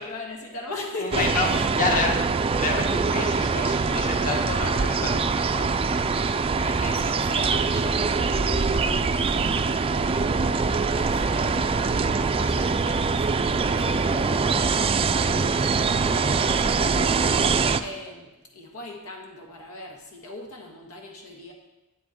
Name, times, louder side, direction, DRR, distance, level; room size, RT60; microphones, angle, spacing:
voice 1, 0.0-2.1 6.2-9.8 10.9-21.5, left 2 dB, 90° left, 1 dB, 1.6 m, -39 dB
voice 2, 1.0-1.5 1.8-2.1 2.6-6.1, left 2 dB, 40° left, 1 dB, 1.4 m, -29 dB
sound 1, 1.1-17.8, right 4 dB, 25° right, 0.4 m, -23 dB
11.0 x 8.0 x 4.5 m, 1.0 s
head